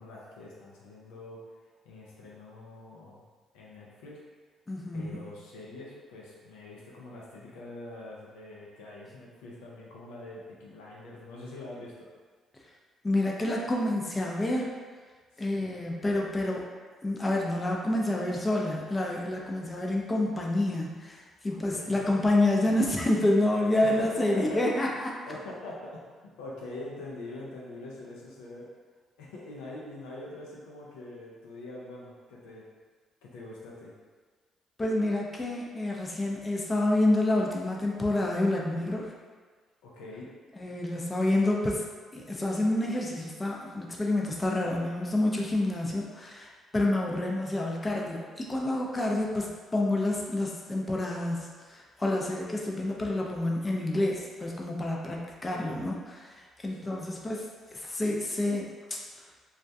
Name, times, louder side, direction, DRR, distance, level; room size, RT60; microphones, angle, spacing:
voice 1, 0.0-1.4 1.8-3.2 3.5-4.2 4.9-12.1 15.3-15.7 21.5-22.0 23.8-24.1 24.3-24.6 25.2-26.0 26.4-28.7 29.2-32.6 33.2-33.9 39.8-40.3 47.0-47.1 56.7-57.0, left 2 dB, 85° left, -4 dB, 0.4 m, -44 dB
voice 2, 4.7-5.2 13.0-14.7 15.4-16.6 17.0-25.2 34.8-39.1 40.6-41.8 42.1-57.4 57.7-59.0, left 1 dB, 30° left, -1 dB, 0.4 m, -28 dB
2.3 x 2.1 x 2.6 m, 1.5 s
hypercardioid pair, 55°, 0 cm